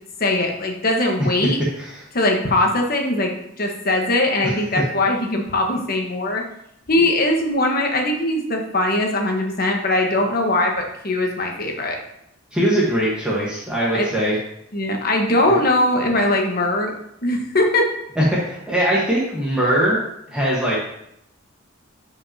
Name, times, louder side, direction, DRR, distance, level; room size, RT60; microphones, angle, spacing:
voice 1, 0.2-1.6 2.1-3.3 3.6-6.4 6.9-12.0 13.9-14.1 14.7-16.9 17.2-17.9, left 1 dB, 50° left, 2 dB, 1.2 m, -20 dB
voice 2, 12.5-14.4 15.5-15.6 18.2-20.0 20.3-20.8, right 1 dB, 5° right, -7 dB, 1.3 m, -21 dB
10.5 x 5.1 x 2.8 m, 0.78 s
head